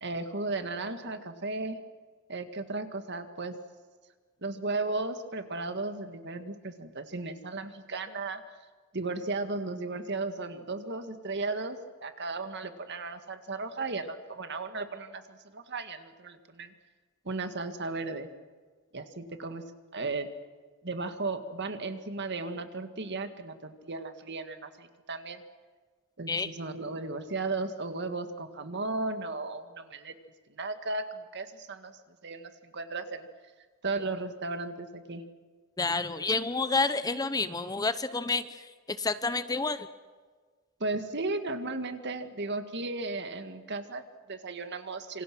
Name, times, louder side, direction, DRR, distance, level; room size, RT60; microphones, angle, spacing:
voice 1, 0.0-1.8 2.3-3.5 4.4-8.4 8.9-16.7 17.3-18.3 18.9-19.6 19.9-20.3 20.8-25.4 26.2-30.1 30.5-31.9 32.2-33.3 33.8-35.2 40.8-45.2, right 3 dB, 55° right, 8 dB, 1.9 m, -35 dB
voice 2, 35.8-39.9, left 3 dB, 20° left, 12 dB, 0.8 m, -29 dB
27.5 x 26.0 x 6.2 m, 1.5 s
head